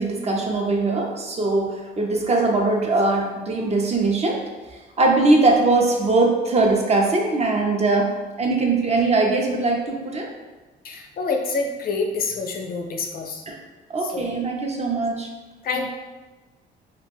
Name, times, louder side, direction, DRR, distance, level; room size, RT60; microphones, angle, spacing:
voice 1, 0.0-4.4 5.0-8.1 8.4-10.3 13.5-13.6 13.9-15.3 15.7-15.8, right 3 dB, 35° right, 1 dB, 0.5 m, -21 dB
voice 2, 10.8-13.4 14.0-14.4 15.6-15.9, left 4 dB, 50° left, 3 dB, 0.4 m, -27 dB
2.4 x 2.1 x 3.3 m, 1.2 s
cardioid pair, 90°, 20 cm